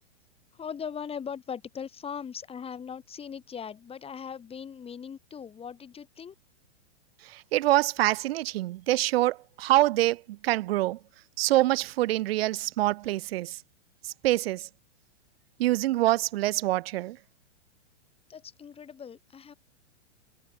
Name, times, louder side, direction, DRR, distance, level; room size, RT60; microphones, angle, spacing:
voice 1, 0.5-6.3 18.3-19.5, left 7 dB, 15° left, 4.1 m, -39 dB
voice 2, 7.2-11.0 11.4-13.6 14.0-14.7 15.6-17.2, right 16 dB, 60° right, 0.8 m, -25 dB
hypercardioid pair, 130°, 34 cm